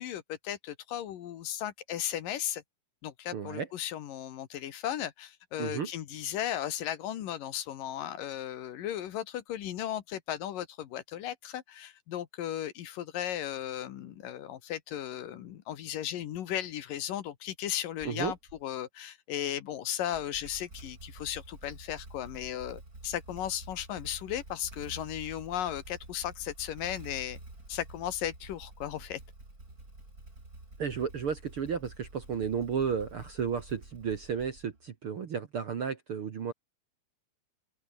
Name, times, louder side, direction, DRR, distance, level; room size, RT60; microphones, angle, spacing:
voice 1, 0.0-2.6 3.0-27.4 27.7-29.2, left 11 dB, 70° left, 2.9 m, -36 dB
voice 2, 3.3-3.7 5.6-5.9 18.1-18.3 30.8-36.5, right 7 dB, 50° right, 1.8 m, -33 dB
Motorcycle / Engine starting, 18.0-18.6 20.0-34.9, right 2 dB, 20° right, 6.5 m, -49 dB
open air
omnidirectional pair, 4.3 m